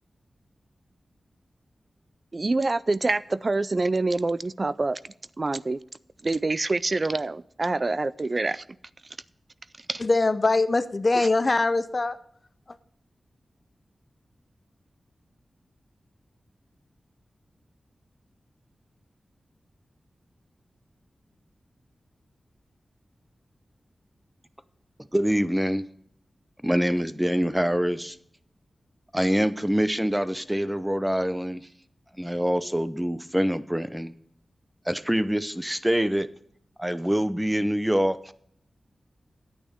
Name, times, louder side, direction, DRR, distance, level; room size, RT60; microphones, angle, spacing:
voice 1, 2.3-5.0 5.4-5.8 6.2-8.6 9.9-10.0 11.1-11.3, right 3 dB, 40° right, 0.3 m, -26 dB
voice 2, 10.0-12.2, left 3 dB, 40° left, 0.6 m, -22 dB
voice 3, 25.1-25.8 26.6-28.2 29.1-31.7 32.2-34.1 34.9-36.3 36.8-38.3, equal, 5° right, 0.6 m, -25 dB
9.9 x 8.9 x 5.1 m
wide cardioid pair, 65°, 0 cm